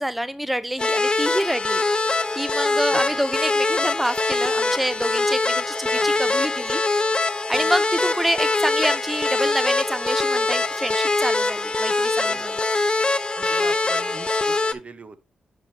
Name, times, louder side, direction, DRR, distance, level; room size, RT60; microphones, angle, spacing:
voice 1, 0.0-1.8 2.4-6.8 7.5-12.5, equal, 5° right, 0.4 m, -27 dB
sound 1, 0.8-14.7, left 3 dB, 30° left, 0.7 m, -23 dB
voice 2, 13.4-15.4, right 3 dB, 45° right, 1.0 m, -40 dB
10.5 x 5.1 x 2.8 m
cardioid pair, 50°, 3 cm